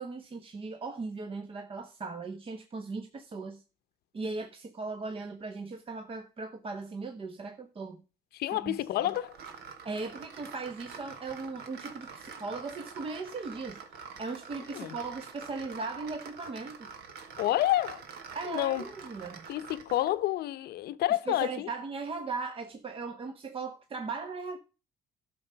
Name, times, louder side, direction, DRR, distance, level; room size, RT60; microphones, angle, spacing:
voice 1, 0.0-3.6 4.1-8.0 8.5-9.1 9.8-16.9 18.3-19.4 21.3-24.6, right 4 dB, 35° right, 1.1 m, -38 dB
voice 2, 8.3-9.3 14.7-15.0 17.4-18.0 18.4-18.9 19.5-21.7, left 14 dB, 70° left, 0.8 m, -29 dB
sound 1, 9.1-20.2, right 5 dB, 70° right, 1.7 m, -46 dB
12.0 x 6.2 x 5.7 m
cardioid pair, 110°, 17 cm